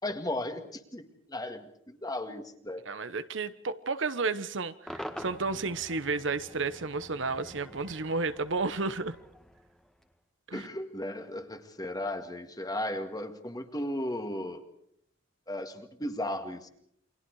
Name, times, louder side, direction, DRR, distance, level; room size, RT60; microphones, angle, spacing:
voice 1, 0.0-2.8 10.5-14.6 15.5-16.7, left 1 dB, 20° left, 7 dB, 2.0 m, -35 dB
voice 2, 2.9-9.2 10.5-10.7, right 4 dB, 70° right, 12 dB, 1.1 m, -32 dB
Cheering / Crowd / Fireworks, 4.9-10.1, equal, 5° left, 1.6 m, -46 dB
29.0 x 24.5 x 4.8 m, 0.67 s
head